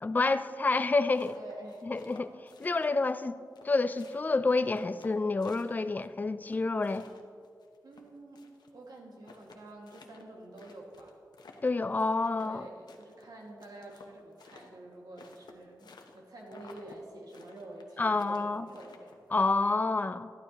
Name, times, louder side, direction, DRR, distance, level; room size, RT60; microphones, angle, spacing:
voice 1, 0.0-1.3 1.9-2.3 2.6-3.4 3.6-7.1 11.6-12.7 18.0-18.7 19.3-20.3, left 3 dB, 25° left, 12 dB, 0.3 m, -28 dB
sound 1, 0.9-3.2 3.6-6.1 6.5-8.7 9.0-9.1 9.3-12.6 12.9-16.2 16.5-17.0 17.3-19.3, left 4 dB, 85° left, 0.9 m, -54 dB
voice 2, 1.3-1.9 7.8-8.4 8.7-11.2 12.4-19.2, right 1 dB, 70° right, -1 dB, 1.9 m, -48 dB
13.0 x 11.5 x 2.9 m, 2.2 s
wide cardioid pair, 100°, 7 cm